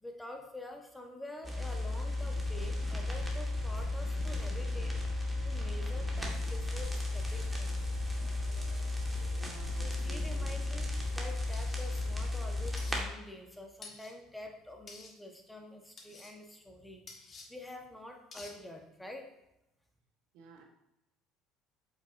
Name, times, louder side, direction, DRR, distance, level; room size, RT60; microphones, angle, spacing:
voice 1, 0.0-5.0 5.4-7.8 9.8-19.3, left 1 dB, 5° left, 3 dB, 1.2 m, -47 dB
sound 1, 1.4-13.0, left 2 dB, 10° right, 1.6 m, -34 dB
sound 2, 2.4-2.6 3.0-3.2 3.6-3.8 4.2-4.4 4.8-5.0 5.4-5.6 6.0-6.2 6.6-6.8 7.2-7.4 7.8-8.0 8.4-8.6 9.0-9.2 9.6-9.8 10.2-10.4 10.8-11.0 11.4-11.6 12.0-12.2 12.6-12.7, left 1 dB, 50° left, 1.8 m, -44 dB
voice 2, 9.4-10.6 20.3-20.6, right 4 dB, 75° right, 2 dB, 1.2 m, -53 dB
sound 3, 11.5-12.0 12.8-13.0 13.8-14.1 14.9-15.1 16.0-16.3 17.1-17.5 18.3-18.5, left 3 dB, 35° left, 1.5 m, -50 dB
7.5 x 5.8 x 2.6 m, 0.88 s
supercardioid pair, 95°, 0 cm